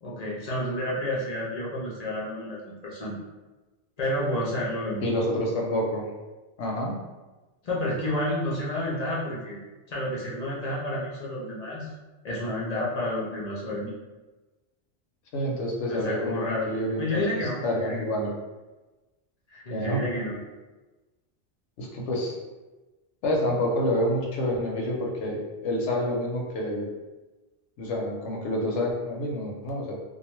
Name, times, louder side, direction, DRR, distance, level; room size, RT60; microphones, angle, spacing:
voice 1, 0.0-3.2 4.0-5.1 7.6-9.6 9.9-11.9 12.2-13.9 15.9-16.7 17.0-18.3 19.5-20.4, left 1 dB, 55° left, -5 dB, 0.4 m, -30 dB
voice 2, 5.0-6.1 6.6-7.0 15.3-18.3 19.7-20.0 21.8-22.4 23.2-26.9 27.8-29.9, left 1 dB, 80° left, -1 dB, 0.9 m, -28 dB
2.4 x 2.2 x 3.0 m, 1.2 s
omnidirectional pair, 1.2 m